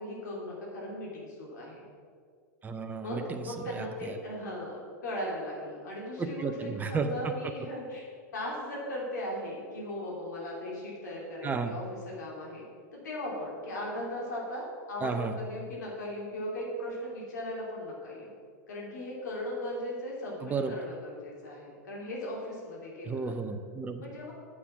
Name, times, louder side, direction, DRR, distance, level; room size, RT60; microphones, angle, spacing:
voice 1, 0.0-1.8 3.0-8.0 8.3-12.6 12.9-18.3 18.7-23.3 24.0-24.3, left 1 dB, 75° left, -3 dB, 3.0 m, -38 dB
voice 2, 2.6-4.2 6.2-7.3 11.4-11.7 15.0-15.4 20.4-20.7 23.0-24.1, right 4 dB, 15° right, 6 dB, 0.7 m, -33 dB
8.3 x 7.3 x 6.1 m, 2.1 s
hypercardioid pair, 100°, 10 cm